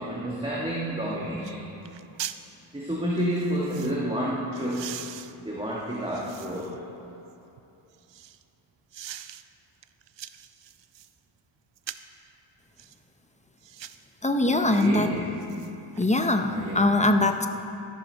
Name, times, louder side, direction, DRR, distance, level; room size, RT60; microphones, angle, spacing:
voice 1, 0.0-1.6 2.7-5.0 5.4-6.8 14.4-15.2 16.5-16.8, equal, 10° right, -5 dB, 1.3 m, -30 dB
sound 1, 0.9-1.0 1.4-1.6 1.8-2.4 3.2-4.0 4.5-6.8 7.3-8.4 8.9-9.4 9.8-11.1 11.8-12.2 12.8-13.0 13.6-14.0 14.7-14.9 15.2-16.1 16.4-16.5, right 10 dB, 60° right, 0.5 m, -42 dB
voice 2, 14.2-15.1 16.0-17.5, left 2 dB, 15° left, 6 dB, 0.5 m, -22 dB
13.5 x 11.0 x 4.4 m, 2.9 s
wide cardioid pair, 130°, 49 cm